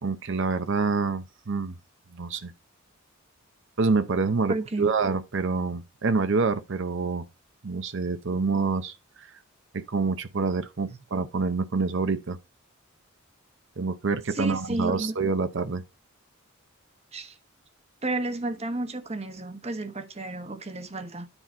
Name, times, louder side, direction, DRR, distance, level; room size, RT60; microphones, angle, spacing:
voice 1, 0.0-1.8 2.1-2.5 3.8-7.2 7.6-9.3 9.7-12.4 13.8-15.8, right 4 dB, 60° right, 0.7 m, -27 dB
voice 2, 4.5-4.9 10.9-11.0 14.3-15.1 17.1-17.3 18.0-21.3, right 2 dB, 30° right, 1.1 m, -32 dB
10.0 x 4.1 x 4.3 m
head